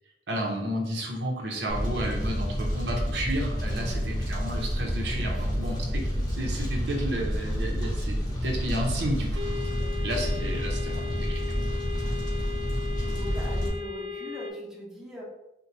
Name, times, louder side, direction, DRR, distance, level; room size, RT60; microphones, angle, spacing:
voice 1, 0.3-9.4 10.0-11.4, right 1 dB, 80° right, -1 dB, 0.8 m, -32 dB
Fire, 1.7-13.7, equal, 25° left, 0.9 m, -29 dB
voice 2, 3.7-4.0 4.8-5.8 9.7-10.2 12.0-12.4 12.7-15.2, equal, 5° right, -5 dB, 0.7 m, -43 dB
sound 1, 9.4-14.5, left 7 dB, 30° right, 0.4 m, -37 dB
4.6 x 2.2 x 2.7 m, 0.92 s
head